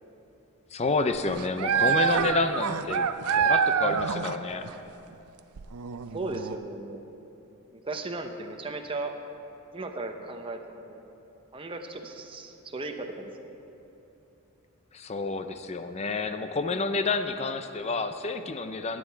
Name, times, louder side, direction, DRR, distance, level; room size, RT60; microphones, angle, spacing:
voice 1, 0.7-4.7 14.9-19.0, left 3 dB, 30° left, 9 dB, 0.5 m, -29 dB
sound 1, 1.0-4.4 4.6-4.7 5.6-6.6, right 7 dB, 80° right, 0.5 m, -26 dB
voice 2, 6.1-7.0 7.7-9.1 9.7-11.0 11.5-13.5, right 2 dB, 25° right, 4 dB, 0.7 m, -36 dB
16.5 x 8.6 x 4.5 m, 3.0 s
head